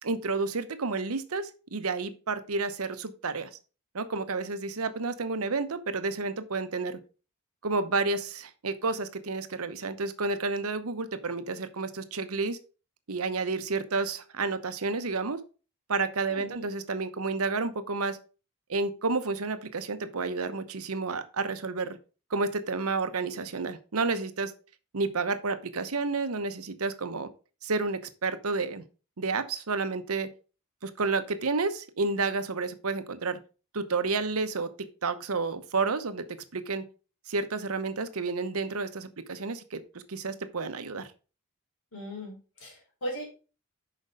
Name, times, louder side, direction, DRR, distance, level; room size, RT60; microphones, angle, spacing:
voice 1, 0.0-3.5 3.9-7.0 7.6-12.6 13.1-15.4 15.9-18.2 18.7-22.0 22.3-24.5 24.9-27.3 27.6-28.8 29.2-30.3 30.8-33.4 33.7-36.8 37.3-39.8 40.1-41.1, right 3 dB, 75° right, 11 dB, 0.9 m, -30 dB
voice 2, 16.3-16.7 41.9-43.3, equal, 65° left, -1 dB, 4.0 m, -38 dB
6.6 x 5.1 x 5.1 m, 0.35 s
head